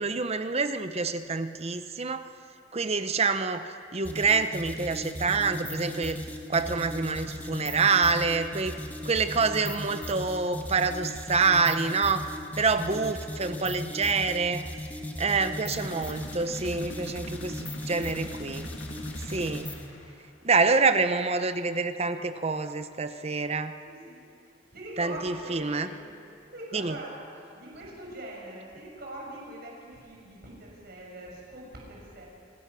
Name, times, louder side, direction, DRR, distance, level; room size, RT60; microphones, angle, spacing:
voice 1, 0.0-2.3 2.7-6.2 6.5-8.7 9.0-12.2 12.6-14.6 15.2-18.7 19.3-19.7 20.4-23.8 25.0-25.9 26.7-26.9, right 4 dB, 35° right, 10 dB, 0.8 m, -27 dB
sound 1, 4.0-19.9, left 1 dB, 10° left, 1.6 m, -38 dB
sound 2, 15.7-20.5, left 2 dB, 90° left, 2.0 m, -45 dB
voice 2, 23.8-26.1 26.5-27.1 27.4-32.3, right 1 dB, 55° right, -2 dB, 6.4 m, -43 dB
27.5 x 16.0 x 6.2 m, 2.5 s
head